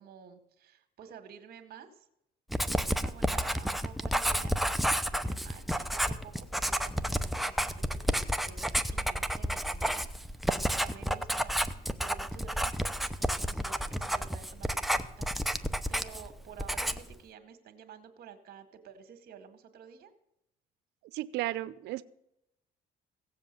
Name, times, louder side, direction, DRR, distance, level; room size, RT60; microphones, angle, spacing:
voice 1, 0.0-2.1 2.6-10.4 10.7-11.5 12.0-15.6 15.9-20.1, right 8 dB, 65° right, 8 dB, 1.9 m, -51 dB
Writing, 2.5-16.3 16.6-17.1, equal, ahead, 0.7 m, -31 dB
voice 2, 21.1-22.0, right 16 dB, 80° right, 15 dB, 0.7 m, -34 dB
16.5 x 7.6 x 7.5 m, 0.83 s
cardioid pair, 110°, 17 cm